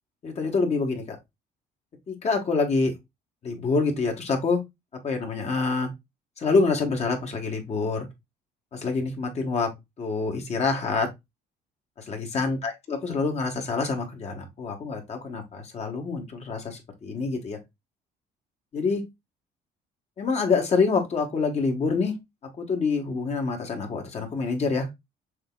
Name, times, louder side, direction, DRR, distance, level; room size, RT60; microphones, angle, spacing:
voice 1, 0.2-1.2 2.1-2.9 3.4-4.6 5.0-5.9 6.4-8.1 8.7-9.7 10.0-11.1 12.0-17.6 18.7-19.0 20.2-22.1 22.6-24.9, left 4 dB, 40° left, 1.4 m, -26 dB
6.4 x 2.8 x 2.3 m
cardioid pair, 110°, 17 cm